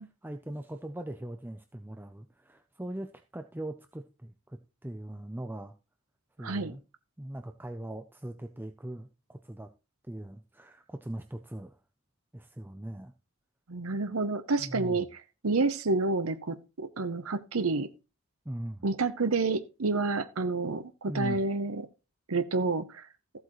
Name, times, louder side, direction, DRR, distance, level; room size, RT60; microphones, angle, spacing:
voice 1, 0.2-5.7 6.4-6.8 7.2-9.7 10.1-11.8 12.3-13.1 14.6-15.0 18.4-18.9 21.1-21.4, right 1 dB, 10° right, 0.6 m, -40 dB
voice 2, 6.4-6.8 13.7-17.9 18.8-21.8 22.3-23.1, right 3 dB, 75° right, 0.9 m, -29 dB
14.5 x 8.0 x 3.1 m
head